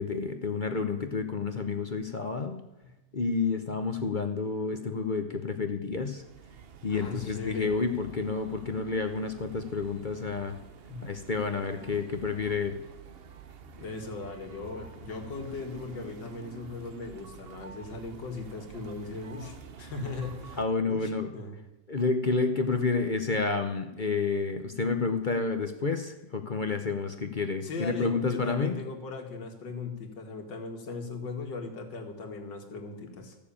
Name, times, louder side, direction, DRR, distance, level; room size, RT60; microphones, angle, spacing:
voice 1, 0.0-2.6 3.1-6.2 6.8-10.6 11.0-12.8 20.6-21.3 21.9-28.8, left 4 dB, 45° left, 7 dB, 0.6 m, -30 dB
sound 1, 6.2-20.7, right 6 dB, 55° right, 0.6 m, -48 dB
voice 2, 6.9-7.7 10.9-11.1 13.8-20.6 20.9-21.6 27.6-33.3, left 3 dB, 75° left, 3 dB, 2.6 m, -38 dB
14.5 x 7.0 x 8.6 m, 0.97 s
omnidirectional pair, 2.0 m